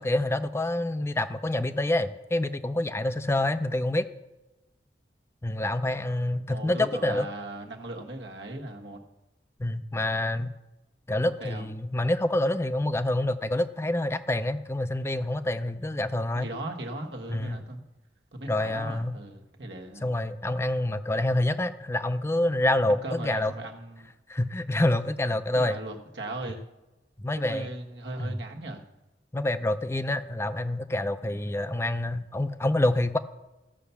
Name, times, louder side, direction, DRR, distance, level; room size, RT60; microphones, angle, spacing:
voice 1, 0.0-4.1 5.4-7.2 9.6-10.5 11.1-16.5 17.3-17.6 18.5-19.2 20.0-23.5 24.3-25.8 27.2-27.7 28.2-28.4 29.3-33.2, left 1 dB, 15° left, 10 dB, 0.5 m, -27 dB
voice 2, 6.5-9.0 11.2-11.7 16.3-17.8 18.3-20.1 22.9-24.1 25.5-26.6 27.4-28.8, right 1 dB, 85° right, 2 dB, 1.5 m, -38 dB
15.0 x 5.7 x 6.9 m, 1.1 s
head